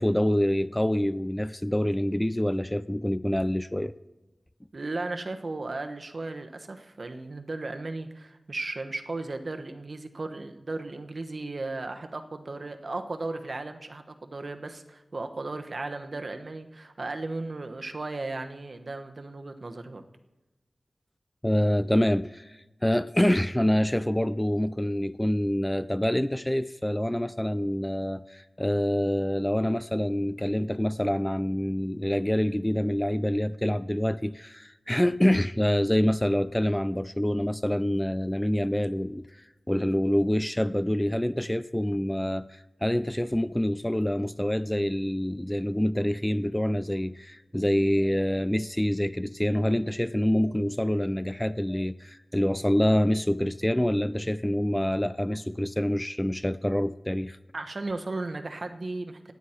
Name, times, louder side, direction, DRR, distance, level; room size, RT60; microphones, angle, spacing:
voice 1, 0.0-3.9 21.4-39.2 39.7-57.4, left 1 dB, 10° left, 14 dB, 0.3 m, -26 dB
voice 2, 4.7-20.0 57.5-59.3, right 2 dB, 50° right, 7 dB, 1.0 m, -35 dB
18.0 x 9.4 x 4.4 m, 1.1 s
wide cardioid pair, 95°, 0 cm